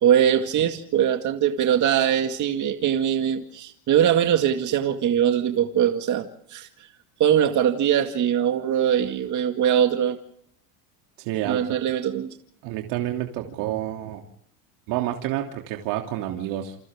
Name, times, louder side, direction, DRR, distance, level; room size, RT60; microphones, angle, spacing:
voice 1, 0.0-6.7 7.2-10.2 11.4-12.3, right 9 dB, 40° right, 5 dB, 2.1 m, -22 dB
voice 2, 11.2-11.7 12.6-14.2 14.9-16.8, right 13 dB, 60° right, 2 dB, 3.1 m, -29 dB
29.0 x 27.5 x 3.7 m, 0.70 s
supercardioid pair, 120°, 47 cm